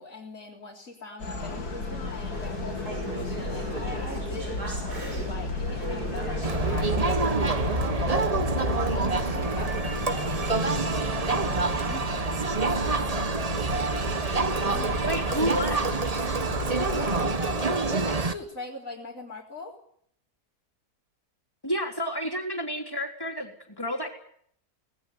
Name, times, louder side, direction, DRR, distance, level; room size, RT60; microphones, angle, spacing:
voice 1, 0.0-4.6 5.2-12.5 14.6-15.2 16.9-19.8, left 3 dB, 60° left, -4 dB, 4.2 m, -42 dB
sound 1, 1.2-17.3, left 3 dB, 80° left, 3.5 m, -34 dB
Conversation / Chatter, 2.3-9.0, right 2 dB, 90° right, 6.9 m, -37 dB
Crowd, 6.4-18.3, right 3 dB, 25° right, 1.1 m, -27 dB
voice 2, 15.0-16.0 21.6-24.1, equal, 15° left, 2 dB, 3.8 m, -30 dB
19.0 x 18.0 x 9.7 m, 0.66 s
omnidirectional pair, 1.6 m